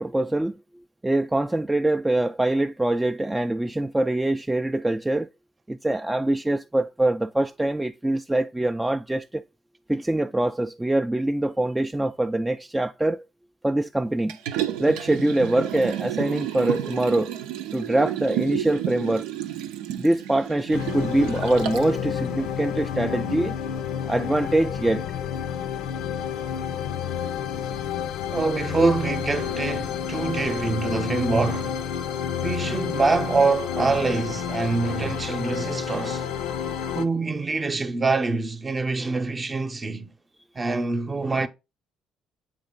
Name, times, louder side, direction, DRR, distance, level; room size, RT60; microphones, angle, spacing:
voice 1, 0.0-5.3 5.7-9.4 9.9-13.2 13.6-14.4 14.8-17.3 17.7-19.3 20.0-23.5 24.1-25.1, right 1 dB, 10° right, 0.3 m, -24 dB
Liquid, 14.3-22.0 22.4-22.5, right 11 dB, 85° right, 0.5 m, -31 dB
sound 1, 20.7-37.0, left 8 dB, 80° left, 0.6 m, -30 dB
voice 2, 28.3-31.8 32.4-36.3 36.9-40.1 40.6-41.5, right 3 dB, 30° right, 0.8 m, -25 dB
8.0 x 3.6 x 3.8 m
supercardioid pair, 70°, 0 cm